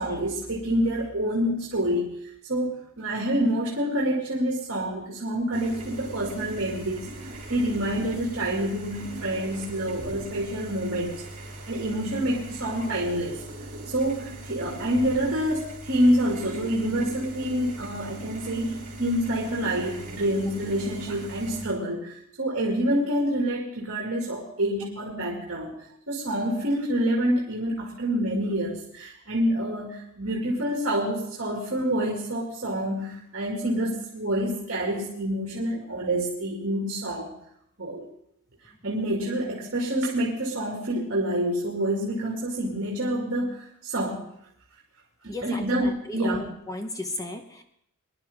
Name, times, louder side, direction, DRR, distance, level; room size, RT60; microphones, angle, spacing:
voice 1, 0.0-2.1 2.5-7.1 7.5-11.1 11.7-13.4 13.9-22.1 22.4-25.7 26.1-37.3 37.8-38.1 38.8-44.3 45.2-46.5, right 1 dB, 60° right, -2 dB, 2.4 m, -27 dB
sound 1, 5.5-21.6, right 1 dB, 35° right, 3.9 m, -40 dB
voice 2, 45.3-47.6, left 2 dB, 15° left, 5 dB, 1.1 m, -35 dB
21.5 x 11.0 x 3.6 m, 0.71 s
head